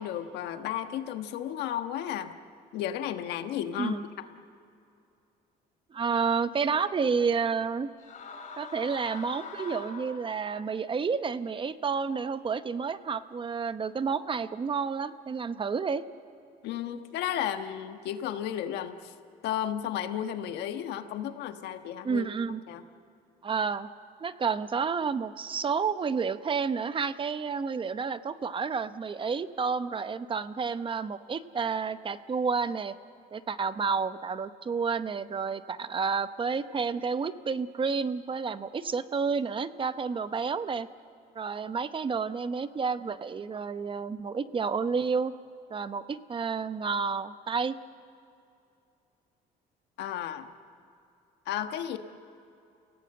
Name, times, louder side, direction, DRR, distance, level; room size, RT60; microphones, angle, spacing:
voice 1, 0.0-2.3 2.7-4.2 16.6-19.1 19.4-22.3 22.7-22.8 50.0-50.5 51.5-52.0, left 10 dB, 85° left, 8 dB, 1.4 m, -33 dB
voice 2, 5.9-7.9 8.6-16.0 22.0-22.6 23.4-23.9 24.2-32.9 33.3-40.9 41.3-45.3 45.7-47.7, right 5 dB, 30° right, 12 dB, 0.8 m, -30 dB
sound 1, 8.0-10.6, left 4 dB, 50° left, 2.6 m, -43 dB
29.5 x 17.5 x 7.8 m, 2.6 s
cardioid pair, 110°, 17 cm